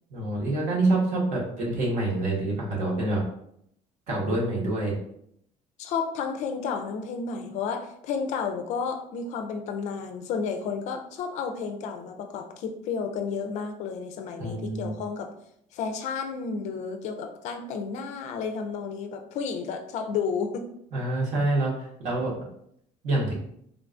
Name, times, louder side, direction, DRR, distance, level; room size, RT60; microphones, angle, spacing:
voice 1, 0.1-3.2 4.1-4.9 14.4-14.9 20.9-22.3 23.0-23.3, right 2 dB, 60° right, -4 dB, 1.1 m, -26 dB
voice 2, 5.8-15.3 15.7-20.7, left 5 dB, 55° left, 5 dB, 0.4 m, -32 dB
3.7 x 2.3 x 2.5 m, 0.72 s
cardioid pair, 170°, 14 cm